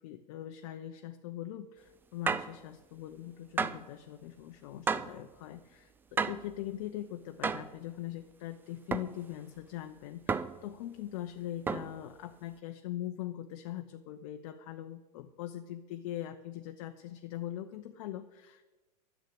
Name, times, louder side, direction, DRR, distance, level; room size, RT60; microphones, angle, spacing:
voice 1, 0.0-18.7, left 12 dB, 50° left, 7 dB, 0.7 m, -42 dB
sound 1, 2.3-2.6 3.6-3.9 4.9-5.2 6.2-6.5 7.4-7.8 8.9-9.2 10.3-10.7 11.7-12.0, right 5 dB, 10° right, 0.3 m, -32 dB
10.0 x 7.3 x 8.6 m, 1.2 s
hypercardioid pair, 110°, 21 cm